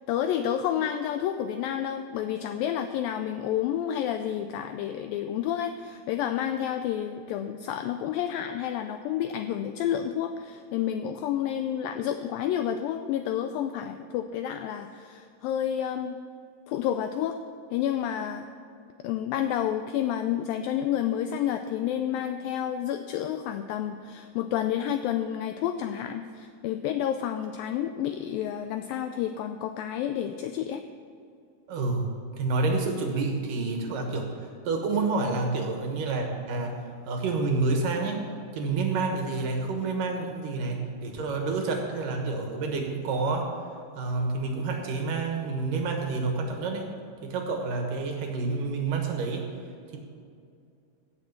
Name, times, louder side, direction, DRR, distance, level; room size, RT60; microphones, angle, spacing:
voice 1, 0.1-16.2 16.7-17.4 17.7-18.5 19.0-30.8, left 10 dB, 85° left, 8 dB, 2.0 m, -30 dB
voice 2, 31.7-38.2 38.5-43.6 44.0-46.9 47.2-49.4, right 3 dB, 65° right, 3 dB, 2.6 m, -29 dB
16.5 x 6.0 x 7.2 m, 2.4 s
omnidirectional pair, 4.6 m